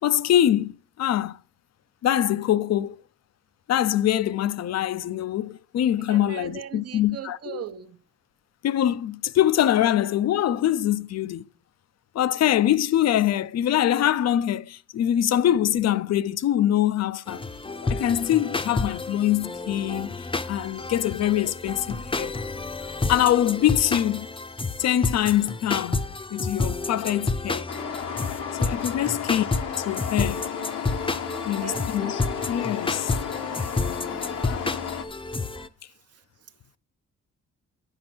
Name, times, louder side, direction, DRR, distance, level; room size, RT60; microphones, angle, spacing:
voice 1, 0.0-1.4 2.0-3.0 3.7-7.6 8.6-11.4 12.1-17.4 17.8-20.1 20.5-22.3 23.1-24.3 24.8-27.7 28.6-29.5 29.9-30.5 31.5-32.2 32.5-33.1 34.4-34.6, left 11 dB, 60° left, 0.5 m, -24 dB
voice 2, 6.1-8.0 29.0-29.2 31.3-31.9 34.1-34.2 36.1-36.2, right 9 dB, 55° right, 0.8 m, -39 dB
sound 1, 17.3-35.7, left 3 dB, 15° left, 0.7 m, -30 dB
sound 2, 27.7-35.1, left 8 dB, 85° left, 1.0 m, -33 dB
8.9 x 5.1 x 6.0 m
cardioid pair, 90°, 30 cm